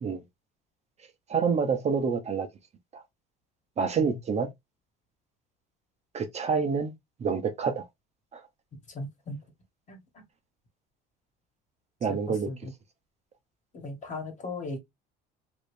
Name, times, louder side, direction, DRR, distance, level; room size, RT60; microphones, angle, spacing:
voice 1, 1.3-2.5 2.9-3.0 3.8-4.5 6.1-6.9 7.2-7.8 12.0-12.5, right 5 dB, 35° right, 0.6 m, -27 dB
voice 2, 8.9-9.4 9.9-10.0 12.1-12.2 12.5-12.7 13.7-14.8, left 2 dB, 35° left, 1.4 m, -37 dB
3.1 x 2.6 x 3.2 m
cardioid pair, 105°, 20 cm